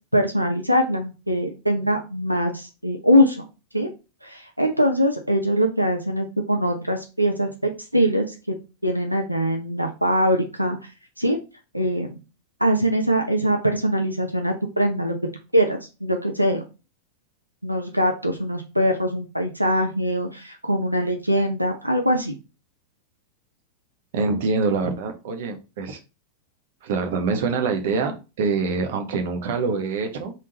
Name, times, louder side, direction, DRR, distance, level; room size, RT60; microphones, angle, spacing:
voice 1, 0.1-3.4 3.7-3.9 4.2-8.6 8.8-10.8 11.2-11.4 11.7-12.2 12.6-15.1 15.5-16.6 17.6-22.3, equal, 90° right, 3 dB, 0.6 m, -22 dB
voice 2, 24.1-26.0 26.8-30.3, right 4 dB, 55° right, 5 dB, 0.8 m, -25 dB
3.6 x 2.7 x 3.9 m, 0.30 s
figure-of-eight pair, 90°, 0 cm